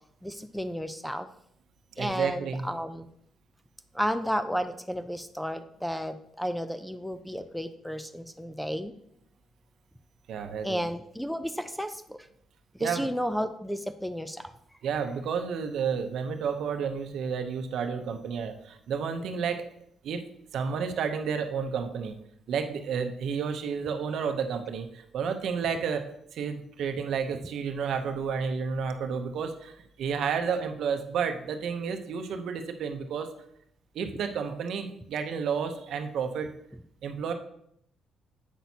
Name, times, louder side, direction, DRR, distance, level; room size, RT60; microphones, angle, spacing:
voice 1, 0.2-1.3 2.0-3.1 3.9-8.9 10.6-12.3 12.7-14.5, equal, ahead, 10 dB, 0.5 m, -32 dB
voice 2, 2.0-2.6 10.3-10.8 12.8-13.1 14.8-19.6 20.0-20.2 20.5-22.2 22.5-33.3 33.9-36.5 37.0-37.3, right 6 dB, 75° right, 6 dB, 0.7 m, -31 dB
8.1 x 6.0 x 2.8 m, 0.73 s
cardioid pair, 90°, 0 cm